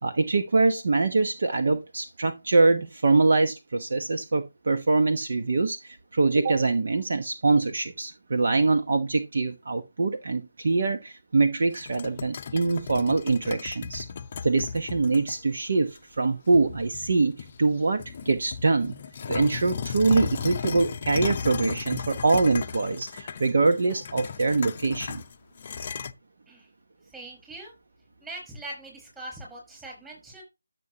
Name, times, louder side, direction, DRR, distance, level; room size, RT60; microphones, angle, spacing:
voice 1, 0.0-14.1 14.4-18.9 19.3-25.2, right 3 dB, 50° right, 1.0 m, -24 dB
sound 1, 11.7-15.4 16.0-16.1 16.5-17.6 18.0-26.1, left 6 dB, 30° left, 0.6 m, -35 dB
voice 2, 27.1-27.7 28.2-30.4, right 1 dB, 5° right, 5.0 m, -41 dB
13.0 x 6.9 x 2.9 m
figure-of-eight pair, 160°, 0 cm